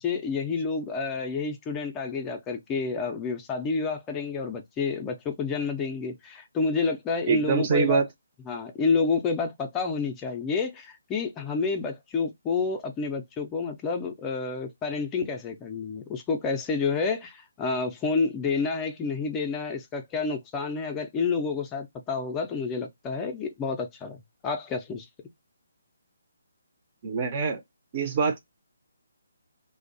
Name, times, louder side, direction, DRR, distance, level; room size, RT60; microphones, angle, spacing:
voice 1, 0.0-8.0 8.5-24.2 24.4-25.1, left 4 dB, 15° left, 0.4 m, -29 dB
voice 2, 7.3-8.1 27.0-27.6 27.9-28.4, right 5 dB, 35° right, 0.5 m, -24 dB
2.5 x 2.0 x 2.5 m
figure-of-eight pair, 150°, 0 cm